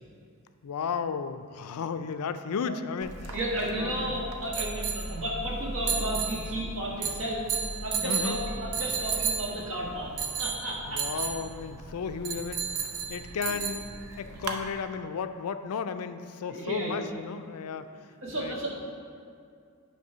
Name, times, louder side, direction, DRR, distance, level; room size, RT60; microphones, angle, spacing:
voice 1, 0.6-3.4 3.8-4.2 8.0-8.4 10.9-13.9 14.2-17.9 18.4-18.5, left 6 dB, 85° left, 10 dB, 0.4 m, -34 dB
sound 1, 3.0-14.6, right 5 dB, 90° right, 0.6 m, -34 dB
voice 2, 3.3-7.4 7.8-10.1 10.4-11.2 13.5-13.6 14.1-14.2 16.5-17.0 18.2-18.7, right 1 dB, 65° right, -4 dB, 1.6 m, -33 dB
9.2 x 3.2 x 5.5 m, 2.3 s
head